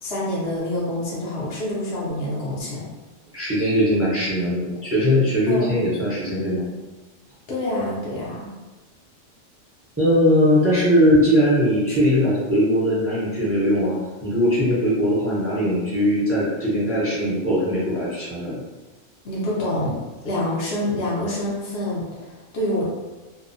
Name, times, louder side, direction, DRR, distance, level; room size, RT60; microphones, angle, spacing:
voice 1, 0.0-2.9 5.5-5.8 7.5-8.5 19.2-20.0 20.2-22.8, left 1 dB, 60° left, -7 dB, 0.9 m, -26 dB
voice 2, 3.3-6.6 10.0-18.6, equal, 20° right, -8 dB, 0.4 m, -20 dB
2.6 x 2.0 x 2.5 m, 1.2 s
omnidirectional pair, 1.3 m